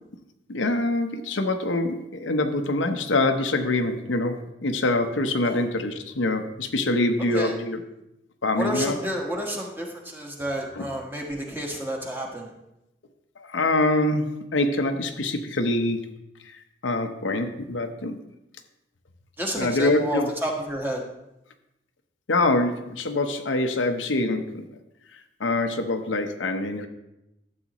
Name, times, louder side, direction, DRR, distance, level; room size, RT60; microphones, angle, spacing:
voice 1, 0.5-7.8 8.4-9.0 10.8-10.9 13.4-16.1 16.8-18.2 19.6-20.3 22.3-24.6 25.4-26.9, left 2 dB, 90° left, 6 dB, 0.8 m, -25 dB
voice 2, 8.5-12.5 19.4-21.0, equal, 10° right, 0 dB, 1.3 m, -30 dB
12.0 x 7.8 x 3.0 m, 0.89 s
head